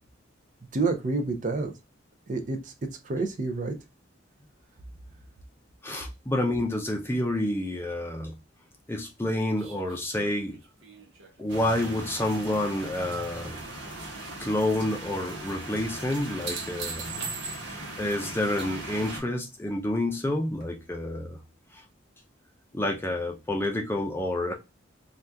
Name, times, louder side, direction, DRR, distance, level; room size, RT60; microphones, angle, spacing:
voice 1, 0.7-1.7 2.3-2.6 3.0-3.7, right 3 dB, 40° right, 0.5 m, -28 dB
voice 2, 5.8-8.3 8.9-10.6 11.4-13.6 14.4-17.0 18.0-21.4 21.7-21.8 22.7-24.5, left 1 dB, 10° left, 0.5 m, -29 dB
sound 1, 9.6-13.0 13.4-14.0 16.1-18.0 20.6-20.7, right 5 dB, 80° right, 0.7 m, -41 dB
sound 2, 11.5-19.2, right 1 dB, 60° right, 1.3 m, -39 dB
2.7 x 2.3 x 3.3 m
head